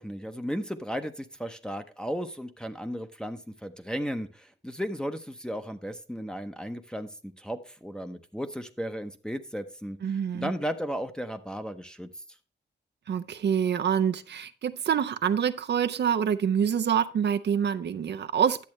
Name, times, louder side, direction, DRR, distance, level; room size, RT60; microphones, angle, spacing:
voice 1, 0.0-10.0 10.3-12.1, equal, 5° left, 0.7 m, -35 dB
voice 2, 10.0-10.5 13.1-18.6, right 8 dB, 65° right, 0.5 m, -26 dB
10.5 x 7.5 x 3.1 m
cardioid pair, 85°, 19 cm